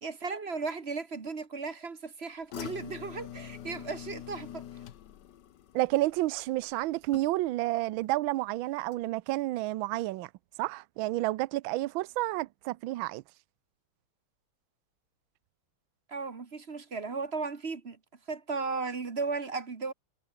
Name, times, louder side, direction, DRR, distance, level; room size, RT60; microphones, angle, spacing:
voice 1, 0.0-4.6 16.1-18.0 18.3-19.9, right 4 dB, 35° right, 1.5 m, -35 dB
Garbage Disposal, 2.5-7.7 8.0-8.5 8.9-9.0, left 11 dB, 60° left, 1.4 m, -45 dB
voice 2, 5.7-10.3 10.6-13.2, right 17 dB, 75° right, 1.4 m, -30 dB
omnidirectional pair, 2.3 m